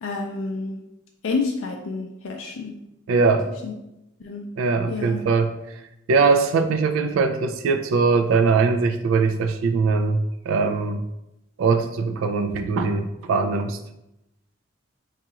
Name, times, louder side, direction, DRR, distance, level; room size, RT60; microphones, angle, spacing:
voice 1, 0.0-0.8 1.2-2.7 3.6-3.7 4.2-4.4 4.9-5.2, left 4 dB, 85° left, 2 dB, 0.4 m, -29 dB
voice 2, 3.1-3.5 4.6-5.5 6.1-10.2 10.5-11.0 11.6-13.8, right 4 dB, 85° right, 7 dB, 0.3 m, -21 dB
4.7 x 2.4 x 2.8 m, 0.89 s
head